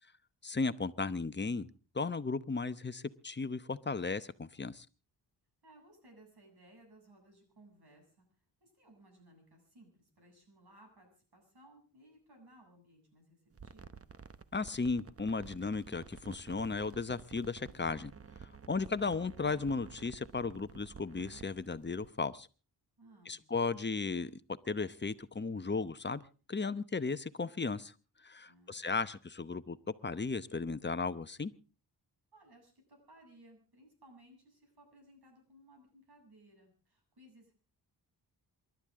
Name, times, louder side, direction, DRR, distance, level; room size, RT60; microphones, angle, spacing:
voice 1, 0.4-1.7 1.9-4.9 14.5-18.1 18.7-22.5 23.3-24.4 24.7-26.2 26.5-27.9 28.2-29.8 30.0-31.5, left 4 dB, 25° left, 13 dB, 0.9 m, -35 dB
voice 2, 5.6-8.3 8.6-14.1 23.0-23.4 28.4-29.1 32.3-37.5, right 1 dB, 65° right, 3 dB, 7.7 m, -61 dB
sound 1, 13.5-22.1, right 5 dB, 35° right, 0.9 m, -52 dB
27.5 x 12.0 x 3.7 m, 0.36 s
cardioid pair, 70°, 42 cm